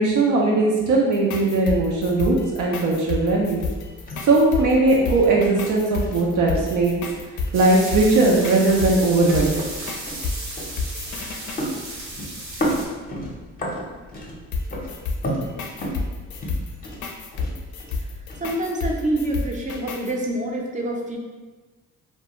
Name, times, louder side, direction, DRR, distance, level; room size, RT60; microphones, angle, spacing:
voice 1, 0.0-3.6 4.2-6.9 7.5-9.7, right 2 dB, 80° right, -2 dB, 0.5 m, -19 dB
sound 1, 1.1-11.6 14.5-20.1, left 3 dB, 70° left, 0.5 m, -30 dB
sound 2, 2.4-19.4, equal, 30° left, 0.6 m, -35 dB
sound 3, 7.5-12.8, right 2 dB, 65° right, 0.8 m, -34 dB
voice 2, 18.4-21.2, right 1 dB, 25° right, 0 dB, 0.5 m, -26 dB
2.3 x 2.2 x 2.9 m, 1.3 s
cardioid pair, 90°, 30 cm